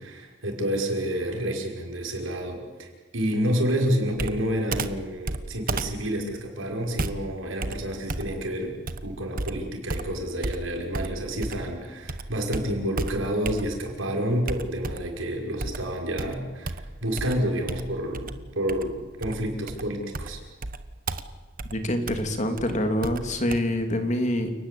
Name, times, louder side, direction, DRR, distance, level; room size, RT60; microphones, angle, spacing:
voice 1, 0.0-8.8 9.0-20.4, equal, 75° right, 2 dB, 5.8 m, -29 dB
Computer keyboard, 4.2-11.8 12.1-14.0 14.5-15.2 15.6-23.6, right 2 dB, 45° right, 1.2 m, -34 dB
voice 2, 21.7-24.5, left 1 dB, 35° left, 6 dB, 2.8 m, -26 dB
29.5 x 19.0 x 8.6 m, 1.3 s
head